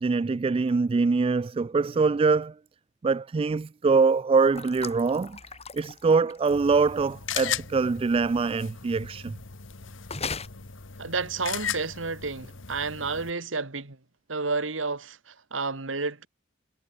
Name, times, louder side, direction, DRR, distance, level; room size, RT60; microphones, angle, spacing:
voice 1, 0.0-2.5 3.0-5.4 5.7-9.3, right 4 dB, 30° right, 0.3 m, -23 dB
sound 1, 4.5-6.8 10.1-10.5, left 5 dB, 35° left, 3.5 m, -37 dB
sound 2, 6.5-13.3, left 8 dB, 80° left, 1.5 m, -37 dB
voice 2, 11.0-14.0 14.3-16.3, right 4 dB, 85° right, 2.2 m, -31 dB
head